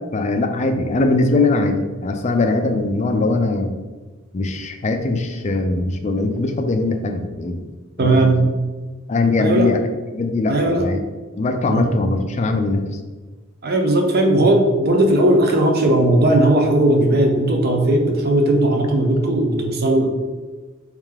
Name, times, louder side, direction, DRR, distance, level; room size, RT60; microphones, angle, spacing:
voice 1, 0.1-3.7 4.3-7.7 8.0-8.3 9.1-9.8 10.1-11.0 11.4-13.0, left 3 dB, 35° left, 5 dB, 0.4 m, -21 dB
voice 2, 8.0-8.5 9.4-9.7 10.5-10.9 11.7-11.9 13.6-20.1, right 1 dB, 45° right, 3 dB, 0.6 m, -17 dB
3.5 x 3.2 x 3.3 m, 1.3 s
head